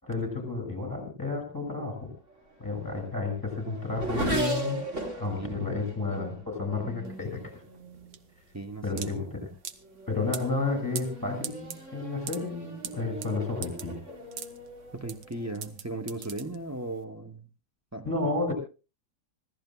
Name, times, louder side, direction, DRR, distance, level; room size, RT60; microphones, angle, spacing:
voice 1, 0.0-2.1 2.6-4.8 5.2-7.6 8.8-9.4 10.1-14.0 18.0-18.5, left 3 dB, 10° left, 5 dB, 6.1 m, -31 dB
Race car auto racing / Accelerating revving vroom, 2.3-8.2 9.0-9.4 9.8-15.7, right 1 dB, 40° right, 3.8 m, -38 dB
voice 2, 5.2-5.7 8.5-9.2 14.9-17.5 17.9-18.3, right 2 dB, 20° right, 4 dB, 0.4 m, -37 dB
sound 1, 7.1-17.0, right 9 dB, 85° right, 1.7 m, -42 dB
26.0 x 15.5 x 2.3 m, 0.33 s
omnidirectional pair, 1.9 m